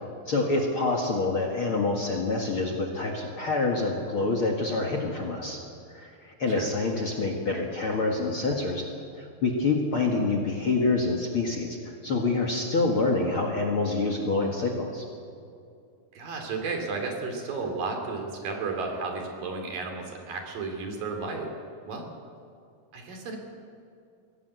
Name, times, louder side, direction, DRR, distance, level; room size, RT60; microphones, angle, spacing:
voice 1, 0.3-5.6 5.9-8.9 9.1-11.8 12.0-15.1, left 3 dB, 45° left, 2 dB, 2.1 m, -27 dB
voice 2, 16.1-21.5 21.9-22.1 22.9-23.4, right 4 dB, 65° right, 3 dB, 4.4 m, -33 dB
23.0 x 17.0 x 8.2 m, 2.5 s
omnidirectional pair, 4.4 m